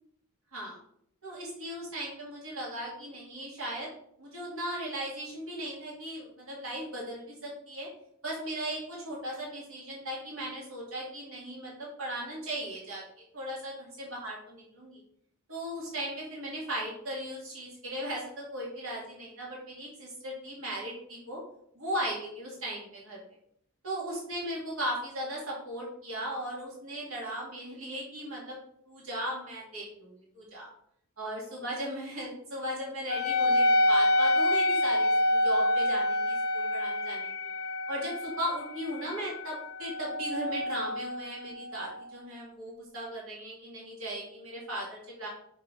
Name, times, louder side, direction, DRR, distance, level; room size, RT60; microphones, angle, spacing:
voice 1, 1.2-3.9 4.2-7.9 8.2-13.0 13.3-14.4 14.8-15.0 15.5-21.4 21.8-23.2 23.8-28.6 28.9-30.7 31.2-37.3 37.9-45.3, right 1 dB, 85° right, -4 dB, 2.2 m, -37 dB
Wind instrument woodwind instrument, 33.1-42.0, left 1 dB, 50° left, 0.6 m, -27 dB
5.6 x 3.6 x 5.4 m, 0.71 s
head